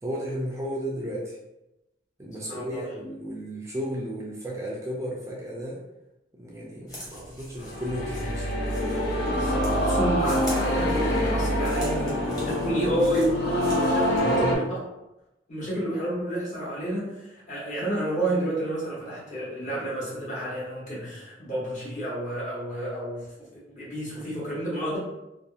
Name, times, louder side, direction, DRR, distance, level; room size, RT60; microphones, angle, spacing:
voice 1, 0.0-1.4 2.2-5.8 6.3-8.5 14.2-14.6, equal, 15° right, -4 dB, 0.4 m, -33 dB
voice 2, 2.5-2.8 9.3-14.6 15.5-25.0, right 1 dB, 45° left, -7 dB, 1.2 m, -30 dB
sound 1, 6.9-14.2, equal, 20° left, 1.0 m, -44 dB
sound 2, 7.6-14.6, equal, 70° left, 0.6 m, -25 dB
2.7 x 2.3 x 2.4 m, 0.94 s
head